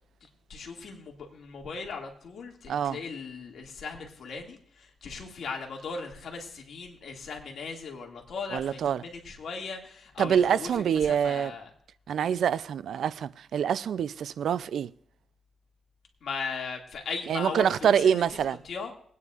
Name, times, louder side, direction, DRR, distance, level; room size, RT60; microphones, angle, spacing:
voice 1, 0.5-10.7 11.0-11.7 16.2-18.9, left 5 dB, 70° left, 2.2 m, -38 dB
voice 2, 2.7-3.0 8.5-9.0 10.2-11.5 12.1-14.9 17.3-18.6, right 8 dB, 75° right, 0.4 m, -26 dB
22.5 x 9.5 x 2.5 m
cardioid pair, 95°, 0 cm